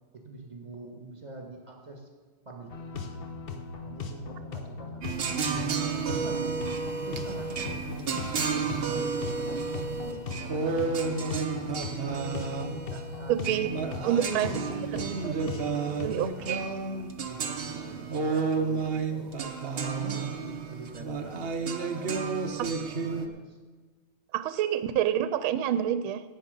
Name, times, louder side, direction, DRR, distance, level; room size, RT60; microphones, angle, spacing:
voice 1, 0.1-2.1 2.5-3.2 3.8-6.5 7.0-11.0 12.1-14.8 16.1-19.4 19.7-23.6, right 2 dB, 20° right, 0 dB, 2.0 m, -45 dB
sound 1, 2.7-16.3, left 4 dB, 75° left, 0.5 m, -39 dB
sound 2, 5.0-23.3, right 5 dB, 65° right, 0.5 m, -31 dB
voice 2, 13.3-13.7 14.0-14.5 14.9-15.7 16.0-16.6 22.6-22.7 24.3-26.2, right 11 dB, 80° right, 12 dB, 1.4 m, -28 dB
15.5 x 9.3 x 5.3 m, 1.3 s
omnidirectional pair, 2.3 m